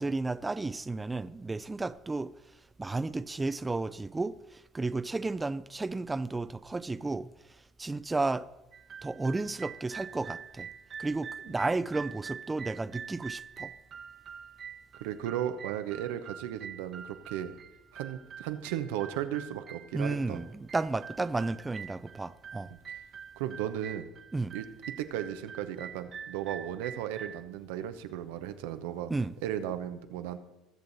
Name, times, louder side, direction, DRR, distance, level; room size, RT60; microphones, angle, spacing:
voice 1, 0.0-2.3 2.8-8.5 9.0-10.7 11.0-13.7 19.9-22.7 24.3-24.5 29.1-29.3, right 3 dB, 15° right, 0.5 m, -33 dB
sound 1, 8.7-27.4, right 7 dB, 45° right, 1.1 m, -46 dB
voice 2, 15.0-17.5 17.9-20.4 22.7-22.8 23.4-24.0 24.5-24.7 25.0-29.1 29.4-30.4, right 11 dB, 80° right, 0.9 m, -35 dB
20.5 x 6.9 x 4.1 m
supercardioid pair, 80°, 0 cm